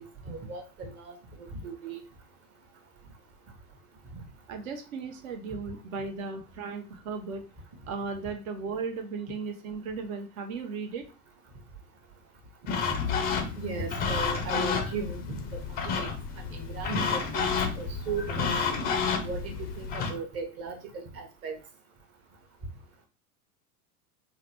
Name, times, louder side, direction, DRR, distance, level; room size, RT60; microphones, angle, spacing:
voice 1, 0.0-2.0 13.6-15.2 15.5-16.1 16.4-18.6 19.2-21.6, right 4 dB, 30° right, 3 dB, 0.9 m, -37 dB
voice 2, 4.5-7.4 7.9-11.1, right 4 dB, 60° right, 6 dB, 0.8 m, -36 dB
sound 1, 12.7-20.1, left 5 dB, 20° left, 0.4 m, -30 dB
3.8 x 2.2 x 2.9 m, 0.33 s
figure-of-eight pair, 85°, 45 cm